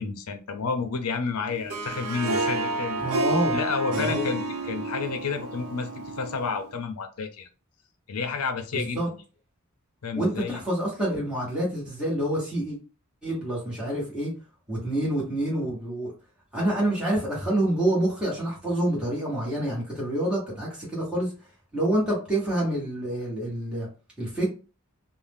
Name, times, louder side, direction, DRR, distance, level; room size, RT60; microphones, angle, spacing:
voice 1, 0.0-3.0 3.5-5.9 6.2-7.5 8.1-9.0 10.0-10.6, left 5 dB, 90° left, 7 dB, 0.6 m, -30 dB
Harp, 1.5-6.7, right 2 dB, 80° right, 0.6 m, -29 dB
voice 2, 3.0-3.6 3.9-4.3 8.7-9.1 10.1-12.8 13.2-14.3 14.7-16.1 16.5-21.3 21.7-23.9 24.2-24.5, right 1 dB, 5° right, -6 dB, 1.1 m, -27 dB
2.6 x 2.0 x 3.4 m, 0.34 s
head